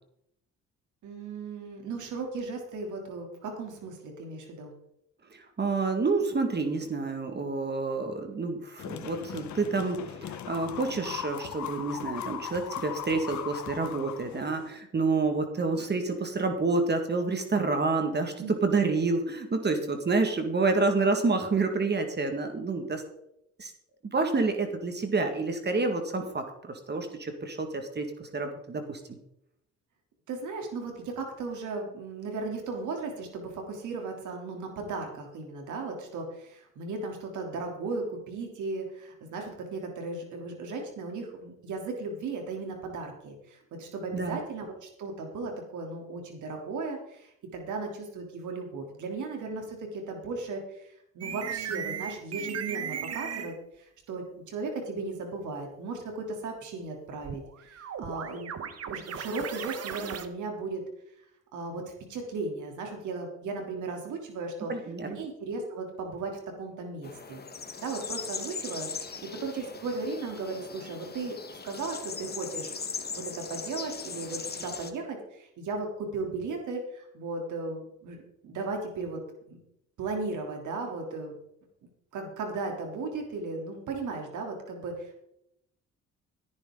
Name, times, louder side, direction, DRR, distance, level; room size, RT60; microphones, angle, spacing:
voice 1, 1.0-4.7 18.4-18.5 30.3-60.8 61.5-61.8 62.1-64.7 65.0-67.4 67.8-68.9 69.4-78.2 78.4-79.2 79.5-79.6 80.0-81.4 82.1-85.2, right 3 dB, 75° right, 2 dB, 3.4 m, -36 dB
voice 2, 5.3-23.0 23.6-23.7 24.1-29.0 44.1-44.4 64.7-65.1, right 3 dB, 35° right, 6 dB, 2.0 m, -28 dB
sound 1, 8.8-14.8, left 9 dB, 70° left, 1.3 m, -39 dB
sound 2, 51.2-53.6 57.2-60.3, right 8 dB, 55° right, 1.3 m, -36 dB
sound 3, 67.0-74.9, left 5 dB, 30° left, 1.6 m, -39 dB
16.0 x 10.0 x 3.9 m, 0.77 s
cardioid pair, 90°, 30 cm